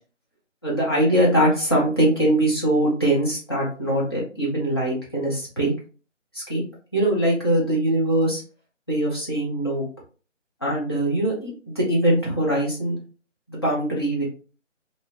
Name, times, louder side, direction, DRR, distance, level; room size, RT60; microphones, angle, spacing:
voice 1, 0.6-5.7 6.3-6.6 6.9-8.4 8.9-9.8 10.6-13.0 13.5-14.2, right 1 dB, 20° left, -6 dB, 0.7 m, -22 dB
2.7 x 2.7 x 2.9 m, 0.37 s
figure-of-eight pair, 155°, 37 cm